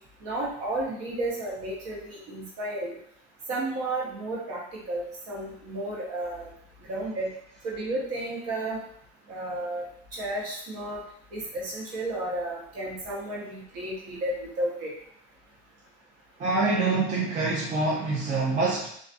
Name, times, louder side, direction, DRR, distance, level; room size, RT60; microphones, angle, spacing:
voice 1, 0.2-2.9 3.5-6.5 6.9-7.3 7.6-8.8 9.3-9.8 10.1-11.0 11.3-14.9, right 1 dB, 55° right, -4 dB, 1.0 m, -32 dB
voice 2, 16.4-18.9, right 3 dB, 25° right, -5 dB, 0.4 m, -25 dB
2.5 x 2.3 x 2.5 m, 0.67 s
cardioid pair, 165°, 30 cm